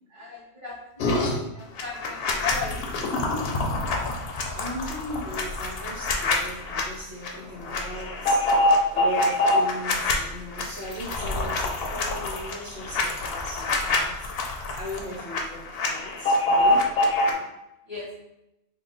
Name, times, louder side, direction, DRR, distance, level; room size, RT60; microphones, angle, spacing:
voice 1, 0.1-3.4 7.0-7.1 15.5-15.7 17.2-17.5 17.8-18.2, left 4 dB, 20° right, -11 dB, 1.0 m, -38 dB
sound 1, 1.0-1.4 1.8-6.8 7.2-7.4 7.6-10.1 10.5-15.4 15.7-17.3, left 2 dB, 65° left, 0.7 m, -25 dB
voice 2, 4.5-16.8, equal, 70° right, -10 dB, 1.2 m, -38 dB
2.8 x 2.3 x 3.9 m, 0.89 s
omnidirectional pair, 1.1 m